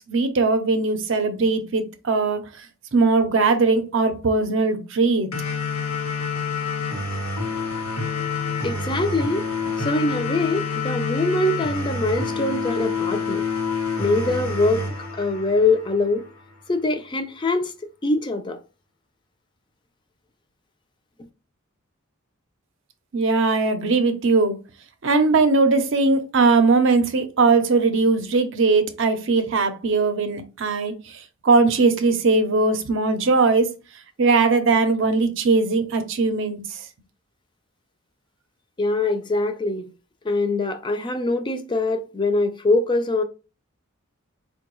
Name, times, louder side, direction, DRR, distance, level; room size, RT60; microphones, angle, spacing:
voice 1, 0.1-2.4 2.9-5.3 23.1-24.6 25.0-33.7 34.2-36.8, right 3 dB, 60° right, 0.6 m, -20 dB
sound 1, 5.3-16.3, left 4 dB, 80° left, 1.0 m, -28 dB
voice 2, 8.6-9.5 9.8-13.4 14.0-14.8 15.2-16.2 16.7-17.7 18.0-18.6 38.8-39.9 40.2-43.2, left 2 dB, 20° left, 0.4 m, -23 dB
4.4 x 2.2 x 3.0 m
head